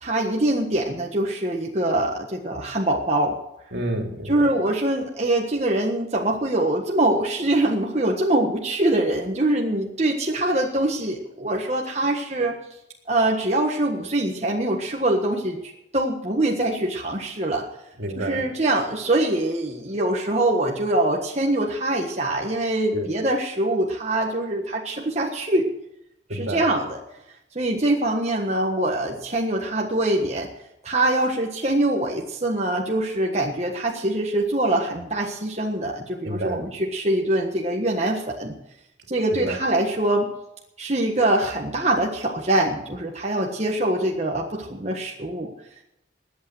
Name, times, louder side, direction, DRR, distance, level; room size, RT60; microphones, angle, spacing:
voice 1, 0.0-3.3 4.2-12.5 13.1-17.6 18.2-25.7 26.3-27.0 27.5-30.5 30.8-38.5 39.1-40.3 40.8-45.5, right 1 dB, 35° right, 0 dB, 1.4 m, -23 dB
voice 2, 3.7-4.4 18.0-18.5 22.9-23.1 26.3-26.6 36.2-36.6 39.3-39.6, right 1 dB, 70° right, 2 dB, 2.8 m, -29 dB
21.0 x 8.5 x 6.3 m, 0.83 s
head